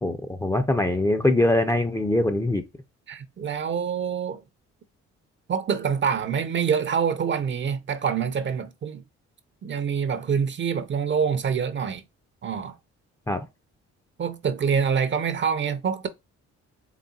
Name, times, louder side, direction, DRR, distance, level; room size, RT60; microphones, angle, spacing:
voice 1, 0.0-2.6 13.3-13.5, left 1 dB, 10° left, 0.5 m, -23 dB
voice 2, 3.1-4.4 5.5-9.0 9.6-12.0 12.4-12.8 14.2-16.1, right 7 dB, 40° right, 0.6 m, -26 dB
4.0 x 3.5 x 2.3 m
cardioid pair, 90°, 30 cm